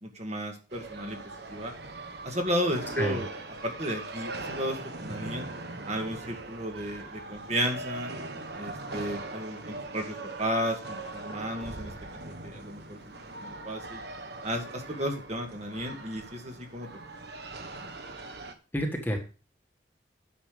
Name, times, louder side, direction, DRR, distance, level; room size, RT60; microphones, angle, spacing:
voice 1, 0.0-1.2 1.5-1.7 2.2-3.3 3.6-5.5 5.9-8.1 8.5-11.9 12.4-13.0 13.4-14.0 14.4-16.9, equal, 35° right, 3 dB, 2.0 m, -33 dB
sound 1, 0.7-18.5, right 2 dB, 55° right, 1.3 m, -41 dB
voice 2, 18.7-19.2, equal, 10° left, 2 dB, 1.5 m, -29 dB
10.0 x 6.7 x 5.1 m, 0.35 s
head